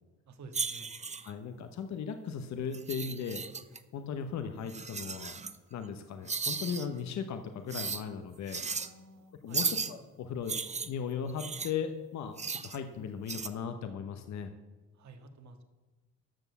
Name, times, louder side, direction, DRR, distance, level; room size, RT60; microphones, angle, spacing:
voice 1, 0.3-1.0 8.8-9.7 14.9-15.6, right 3 dB, 65° right, 6 dB, 1.7 m, -51 dB
sound 1, 0.5-1.3 2.7-3.8 4.7-5.6 6.3-6.9 7.7-8.0 8.5-8.9 9.5-9.9 10.5-11.7 12.4-12.8 13.3-13.5, right 5 dB, 25° right, 0.7 m, -35 dB
voice 2, 1.3-3.4 3.9-5.4 5.7-8.6 9.4-14.5, left 6 dB, 65° left, 7 dB, 1.0 m, -37 dB
13.0 x 6.3 x 7.0 m, 1.2 s
cardioid pair, 90°, 30 cm